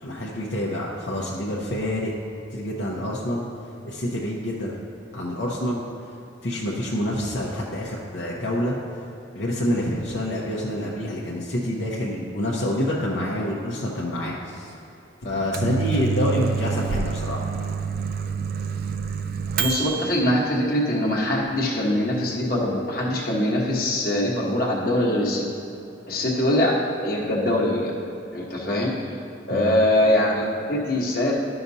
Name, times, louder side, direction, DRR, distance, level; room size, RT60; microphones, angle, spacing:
voice 1, 0.0-2.1 2.5-3.4 3.8-4.7 5.1-5.8 6.4-8.7 9.3-14.7 15.2-17.4 29.5-29.7, left 1 dB, 65° left, -5 dB, 0.8 m, -27 dB
Microwave oven, 15.3-20.1, right 6 dB, 50° right, 0.3 m, -27 dB
voice 2, 19.6-25.5 26.1-26.8 27.0-27.9 28.3-28.9 29.5-31.3, left 1 dB, 50° left, -2 dB, 1.2 m, -22 dB
12.0 x 5.8 x 2.7 m, 2.8 s
head